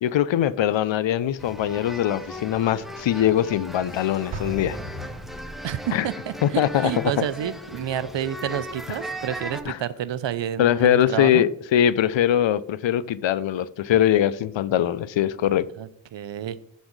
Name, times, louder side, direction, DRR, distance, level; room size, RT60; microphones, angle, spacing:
voice 1, 0.0-4.8 5.9-6.1 6.4-7.1 9.7-9.8 10.6-15.6, left 11 dB, 70° left, 0.6 m, -22 dB
sound 1, 1.4-9.6, equal, ahead, 0.9 m, -37 dB
sound 2, 3.8-5.8, left 2 dB, 25° left, 1.9 m, -44 dB
Explosion, 4.3-6.0, right 3 dB, 85° right, 1.1 m, -37 dB
voice 2, 5.6-11.4 15.8-16.6, right 10 dB, 65° right, 0.7 m, -29 dB
7.0 x 4.2 x 6.5 m
cardioid pair, 60°, 46 cm